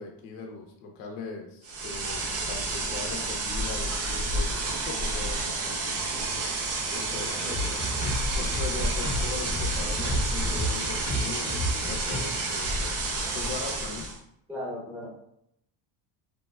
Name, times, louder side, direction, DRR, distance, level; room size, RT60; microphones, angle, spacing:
voice 1, 0.0-6.2 6.9-7.4 8.1-12.7 13.3-14.1, left 4 dB, 85° left, 2 dB, 0.7 m, -40 dB
sound 1, 1.6-14.2, right 2 dB, 35° right, 0.4 m, -30 dB
voice 2, 6.8-7.8 14.5-15.1, left 1 dB, 5° right, -6 dB, 0.8 m, -39 dB
sound 2, 7.4-12.7, equal, 40° left, 0.8 m, -32 dB
3.3 x 2.1 x 2.2 m, 0.75 s
cardioid pair, 125°, 48 cm